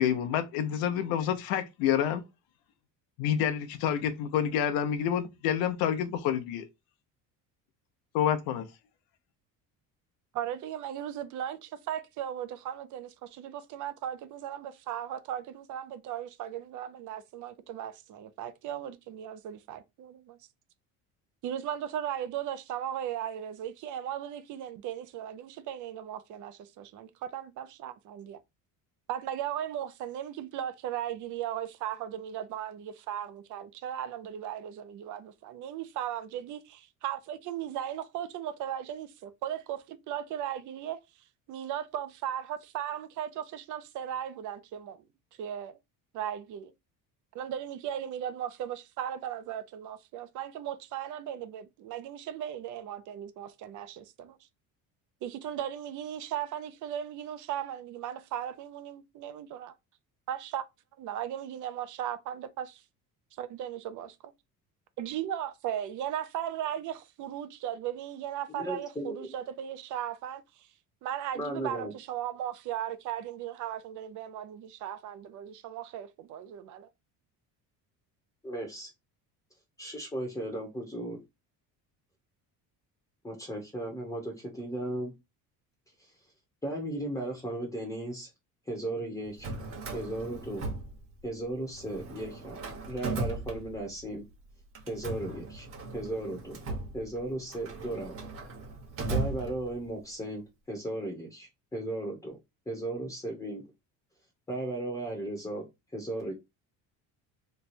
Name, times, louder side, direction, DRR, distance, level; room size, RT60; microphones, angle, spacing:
voice 1, 0.0-2.2 3.2-6.6 8.1-8.7, left 9 dB, 85° left, 0.8 m, -28 dB
voice 2, 10.3-20.4 21.4-28.4 29.1-41.0 41.5-45.0 45.4-45.8 46.1-46.7 47.3-54.4 55.2-59.7 60.3-60.6 61.0-62.8 63.4-64.3 65.0-70.7 71.0-76.9, right 10 dB, 55° right, 0.6 m, -37 dB
voice 3, 68.5-69.3 71.3-71.9 78.4-78.9 79.8-81.2 83.2-85.1 86.0-86.1 86.6-88.3 88.7-89.5 89.9-90.7 91.2-92.6 92.9-94.2 94.8-95.7 95.9-96.6 96.9-98.1 99.1-102.4 102.7-103.6 104.5-105.6 105.9-106.3, right 1 dB, 10° left, 0.9 m, -36 dB
Drawer open or close, 89.2-91.4 91.7-94.1 94.7-100.0, right 3 dB, 35° right, 1.3 m, -37 dB
3.2 x 2.2 x 4.1 m
cardioid pair, 145°, 36 cm